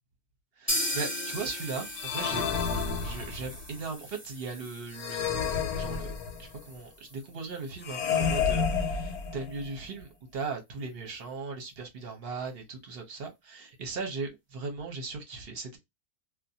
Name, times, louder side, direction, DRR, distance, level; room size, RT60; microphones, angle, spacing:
voice 1, 0.6-2.4 3.0-6.1 6.4-15.8, right 4 dB, 50° right, 0.8 m, -38 dB
sound 1, 0.7-8.4 8.7-8.8 9.1-9.2 9.6-9.7, left 1 dB, 15° left, 0.5 m, -38 dB
sound 2, 1.9-3.6 4.9-6.6 7.8-9.7, left 6 dB, 80° left, 1.1 m, -30 dB
2.5 x 2.2 x 2.6 m
omnidirectional pair, 1.6 m